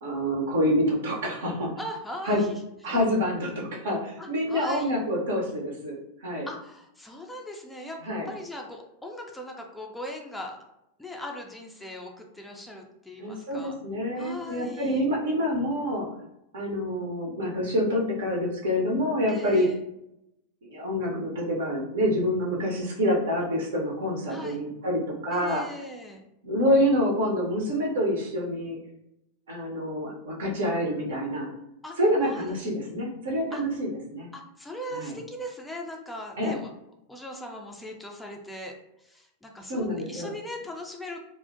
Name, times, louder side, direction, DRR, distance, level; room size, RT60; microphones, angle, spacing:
voice 1, 0.0-1.8 2.2-2.4 2.8-6.5 8.0-8.3 13.2-16.1 16.5-19.7 20.6-25.7 26.4-28.8 29.5-31.5 32.0-34.3 34.9-35.2 36.4-36.6 39.7-40.3, equal, 60° right, -2 dB, 0.6 m, -27 dB
voice 2, 1.8-2.6 2.9-3.0 4.2-4.9 6.5-10.6 11.0-13.8 14.1-15.0 19.3-19.8 24.3-24.6 25.3-26.2 31.8-32.0 32.2-32.6 33.5-33.6 34.3-36.7 37.1-41.2, left 1 dB, 5° left, 0 dB, 0.3 m, -39 dB
2.4 x 2.0 x 2.5 m, 0.83 s
figure-of-eight pair, 90°, 0 cm